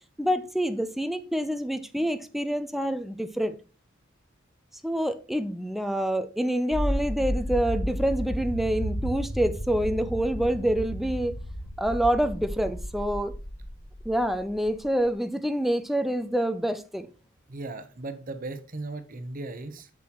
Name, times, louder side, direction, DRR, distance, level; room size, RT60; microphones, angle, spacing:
voice 1, 0.2-3.6 4.8-11.3 11.8-13.3 14.1-17.1, right 1 dB, ahead, 0.4 m, -27 dB
sound 1, 6.7-14.8, equal, 45° left, 1.5 m, -33 dB
voice 2, 17.5-19.9, right 2 dB, 45° right, 0.8 m, -37 dB
7.3 x 6.1 x 2.9 m
head